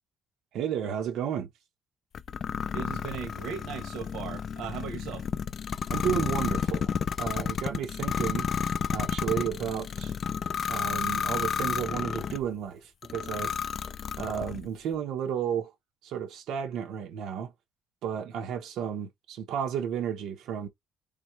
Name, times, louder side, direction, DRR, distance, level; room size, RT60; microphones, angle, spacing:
voice 1, 0.5-1.5 5.9-8.5 8.9-10.1 10.7-13.6 14.2-15.7 16.0-17.5 18.0-20.7, right 8 dB, 65° right, 1.1 m, -32 dB
sound 1, 2.1-12.4 13.0-14.7, left 7 dB, 35° left, 0.4 m, -31 dB
voice 2, 2.7-5.3 18.2-18.3, right 7 dB, 85° right, 1.3 m, -38 dB
4.1 x 4.1 x 3.2 m
cardioid pair, 175°, 0 cm